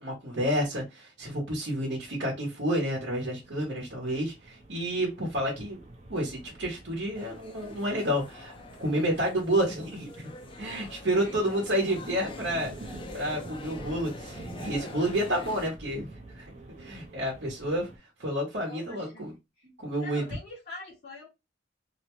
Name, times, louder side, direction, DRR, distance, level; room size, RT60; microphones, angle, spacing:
voice 1, 0.0-5.8 6.1-8.5 8.8-10.3 10.6-12.7 13.1-16.1 16.4-17.9 18.2-19.3 19.8-20.2, right 1 dB, 65° right, 0.9 m, -30 dB
sound 1, 2.3-18.0, right 2 dB, 35° right, 0.6 m, -47 dB
sound 2, 7.1-15.7, left 3 dB, 25° left, 0.5 m, -45 dB
voice 2, 18.7-19.3 19.6-19.7 20.0-21.3, left 2 dB, 55° left, 0.8 m, -44 dB
2.6 x 2.1 x 2.9 m
head